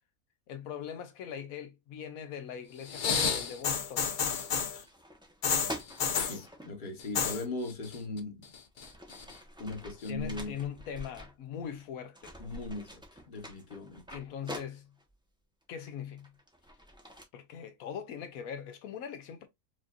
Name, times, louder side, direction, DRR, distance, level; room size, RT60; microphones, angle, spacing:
voice 1, 0.5-4.1 10.1-12.3 14.1-14.9 15.7-16.3 17.3-19.5, left 8 dB, 80° left, 1.1 m, -41 dB
sound 1, 2.8-4.8 5.4-6.4 7.0-7.4 7.7-8.2 8.5-9.3 10.1-10.2, left 6 dB, 60° left, 0.5 m, -30 dB
sound 2, 3.5-3.7 4.1-6.7 7.9-8.0 8.5-11.9 12.1-15.1 15.8-17.2, equal, 5° right, 0.8 m, -46 dB
voice 2, 6.2-8.5 9.3-10.6 12.4-14.0, left 2 dB, 35° left, 1.2 m, -39 dB
5.0 x 2.6 x 2.4 m
omnidirectional pair, 1.5 m